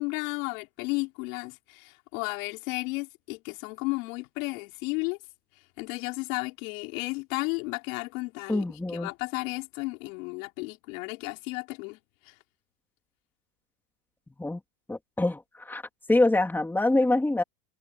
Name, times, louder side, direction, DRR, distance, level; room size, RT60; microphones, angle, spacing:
voice 1, 0.0-5.2 5.8-8.6 8.9-12.0 12.3-12.4, left 27 dB, 60° left, 3.7 m, -33 dB
voice 2, 8.5-9.1 14.4-14.6 14.9-15.8 16.1-17.4, left 2 dB, 5° left, 2.9 m, -25 dB
supercardioid pair, 155°, 44 cm